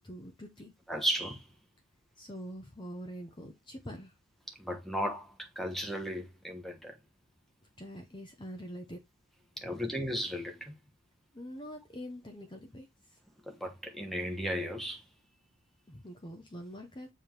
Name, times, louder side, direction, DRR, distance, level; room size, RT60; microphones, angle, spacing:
voice 1, 0.0-0.7 2.2-4.1 7.8-9.0 9.6-9.8 11.3-12.9 15.9-17.1, equal, 20° left, 1.0 m, -44 dB
voice 2, 0.9-1.4 4.6-7.0 9.6-10.8 13.4-15.0, equal, ahead, 1.1 m, -35 dB
7.0 x 3.6 x 4.5 m
head